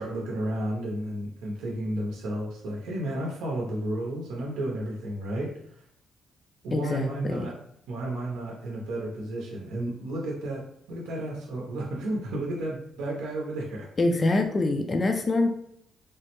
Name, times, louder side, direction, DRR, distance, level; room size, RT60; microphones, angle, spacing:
voice 1, 0.0-5.8 6.6-7.5 7.9-13.9, right 1 dB, 90° right, -2 dB, 0.6 m, -32 dB
voice 2, 6.7-7.5 14.0-15.5, left 2 dB, 35° left, 5 dB, 0.3 m, -25 dB
3.3 x 2.1 x 2.9 m, 0.70 s
cardioid pair, 90°, 0 cm